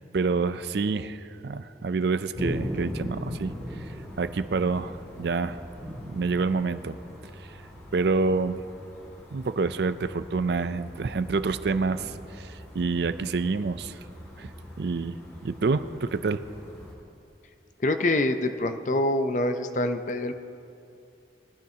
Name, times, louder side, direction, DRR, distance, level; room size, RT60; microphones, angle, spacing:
voice 1, 0.1-3.5 4.2-5.6 6.1-7.0 7.9-8.6 9.3-14.0 14.4-14.5 14.8-15.2 15.4-16.4, right 4 dB, 65° right, 13 dB, 0.4 m, -27 dB
sound 1, 2.3-16.9, equal, 15° left, 2.9 m, -40 dB
voice 2, 17.8-20.4, left 1 dB, 45° left, 8 dB, 0.6 m, -25 dB
21.5 x 12.0 x 2.8 m, 2.6 s
head